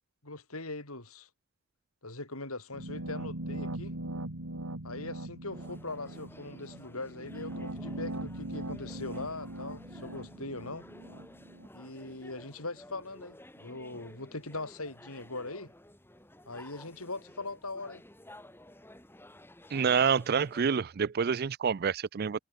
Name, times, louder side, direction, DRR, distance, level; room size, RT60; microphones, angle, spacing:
voice 1, 0.2-1.3 2.0-4.0 4.8-10.9 11.7-15.7 16.5-18.0, left 2 dB, 80° left, 7.7 m, -41 dB
sound 1, 2.7-11.7, right 1 dB, 85° right, 3.2 m, -40 dB
sound 2, 5.5-20.6, left 1 dB, 10° left, 5.1 m, -53 dB
voice 2, 19.7-22.4, right 6 dB, 45° right, 0.4 m, -27 dB
head